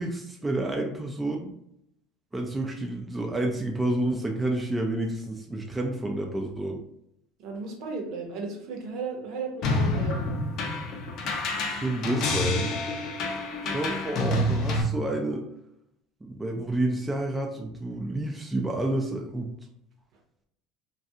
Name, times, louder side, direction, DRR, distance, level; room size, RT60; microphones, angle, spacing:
voice 1, 0.0-1.5 2.3-6.8 11.6-12.7 13.6-15.4 16.2-19.5, right 1 dB, 10° right, 1 dB, 0.3 m, -29 dB
voice 2, 7.4-10.2 13.6-14.0, right 4 dB, 60° right, 2 dB, 0.7 m, -35 dB
sound 1, 9.6-14.8, left 2 dB, 55° left, 0.5 m, -28 dB
2.3 x 2.3 x 2.7 m, 0.76 s
supercardioid pair, 110°, 0 cm